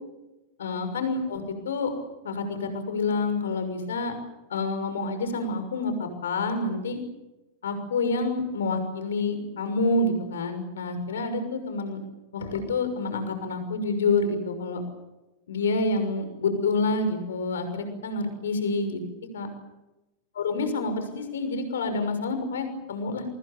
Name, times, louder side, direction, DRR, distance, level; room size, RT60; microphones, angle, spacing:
voice 1, 0.6-1.9 2.2-4.1 4.5-7.0 7.6-12.0 12.3-14.8 15.5-19.0 19.3-19.5 20.4-23.2, left 3 dB, 65° left, 8 dB, 6.2 m, -28 dB
28.0 x 25.0 x 7.2 m, 0.98 s
figure-of-eight pair, 90°, 0 cm